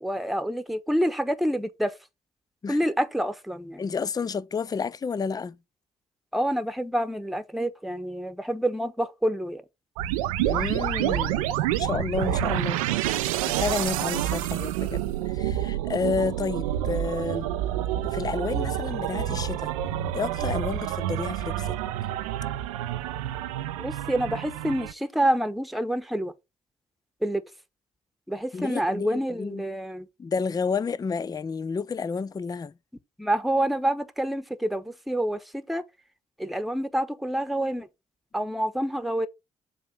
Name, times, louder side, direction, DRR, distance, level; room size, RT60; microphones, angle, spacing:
voice 1, 0.0-2.0 2.7-3.8 6.3-9.6 23.8-26.3 27.2-27.4 28.3-30.1 33.2-35.8 36.4-37.9 38.3-39.3, right 1 dB, ahead, 1.1 m, -27 dB
voice 2, 3.8-5.6 10.4-11.4 11.8-12.8 13.4-17.5 18.0-19.7 20.1-21.8 28.5-29.6 30.2-32.7, left 5 dB, 20° left, 0.4 m, -30 dB
sound 1, 10.0-24.9, right 12 dB, 80° right, 0.5 m, -28 dB
7.6 x 2.9 x 5.8 m
figure-of-eight pair, 40°, 18 cm